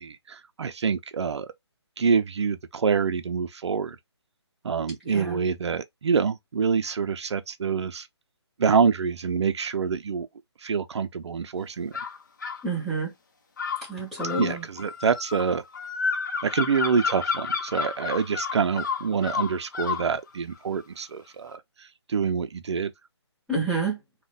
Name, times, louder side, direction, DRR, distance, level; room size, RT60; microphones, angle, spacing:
voice 1, 0.0-1.5 2.0-4.0 4.6-8.1 8.6-10.3 10.6-11.9 14.4-15.6 16.4-21.6 22.1-22.9, right 6 dB, 75° right, 0.5 m, -26 dB
voice 2, 5.0-5.4 12.6-13.1 13.9-14.6 23.5-24.0, right 3 dB, ahead, 0.8 m, -28 dB
sound 1, 11.9-12.6 13.6-20.1, left 5 dB, 40° left, 0.6 m, -30 dB
2.5 x 2.1 x 3.7 m
hypercardioid pair, 175°, 15 cm